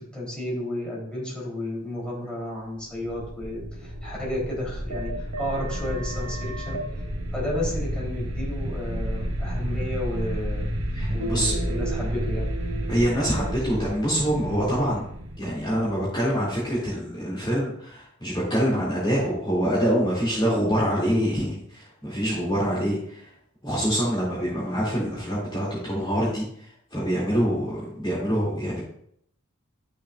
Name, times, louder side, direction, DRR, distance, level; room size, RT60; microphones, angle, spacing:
voice 1, 0.0-6.8 7.3-10.7 11.1-12.5, left 1 dB, 5° left, -5 dB, 3.4 m, -32 dB
sound 1, 2.8-16.5, equal, 85° right, 1.6 m, -31 dB
voice 2, 10.9-11.5 12.9-15.0 15.4-23.2 23.6-26.5 26.9-28.8, equal, 20° left, -7 dB, 2.6 m, -25 dB
12.0 x 6.4 x 2.5 m, 0.69 s
head